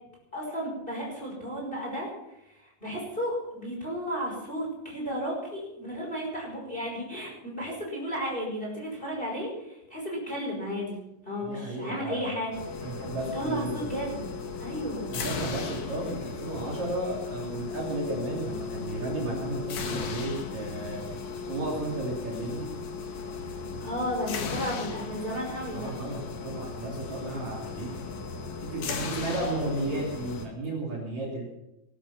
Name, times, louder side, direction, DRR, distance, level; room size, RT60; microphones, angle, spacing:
voice 1, 0.3-2.1 2.8-11.0 11.3-12.5 13.3-14.2 14.6-15.1 23.8-25.9 29.3-29.4, equal, 10° left, -2 dB, 5.4 m, -33 dB
voice 2, 11.4-12.3 12.8-13.8 15.1-21.0 21.5-22.7 25.7-28.0 28.6-31.5, right 2 dB, 45° right, -2 dB, 4.0 m, -33 dB
sound 1, 12.5-30.5, left 4 dB, 60° left, 3.3 m, -36 dB
20.5 x 11.5 x 6.1 m, 0.89 s
omnidirectional pair, 5.1 m